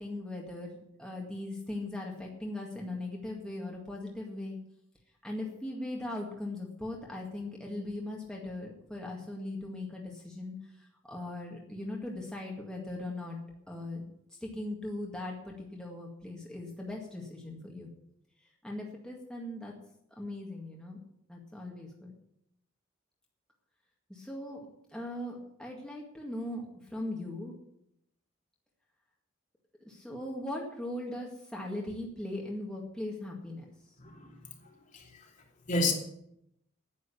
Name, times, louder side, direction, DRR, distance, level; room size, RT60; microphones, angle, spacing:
voice 1, 0.0-4.6 5.2-10.6 11.0-13.4 13.7-14.0 14.4-17.9 18.6-19.8 20.2-21.0 21.3-22.1 24.1-24.7 24.9-26.7 26.9-27.5 29.8-33.6, left 1 dB, 5° left, -2 dB, 1.9 m, -39 dB
voice 2, 34.0-34.4 34.6-35.2 35.7-35.9, left 2 dB, 40° left, 0 dB, 2.9 m, -32 dB
10.0 x 9.4 x 8.3 m, 0.77 s
head